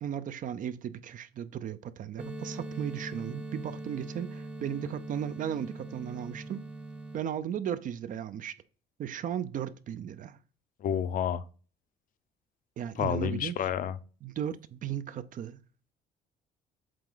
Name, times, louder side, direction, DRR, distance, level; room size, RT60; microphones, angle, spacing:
voice 1, 0.0-6.6 7.1-8.5 9.0-10.4 12.8-13.5 14.2-15.6, right 9 dB, 50° right, 0.6 m, -36 dB
sound 1, 2.2-7.2, right 2 dB, 5° right, 0.7 m, -41 dB
voice 2, 10.8-11.4 13.0-14.0, left 9 dB, 55° left, 0.7 m, -29 dB
7.7 x 4.1 x 3.9 m
cardioid pair, 110°, 17 cm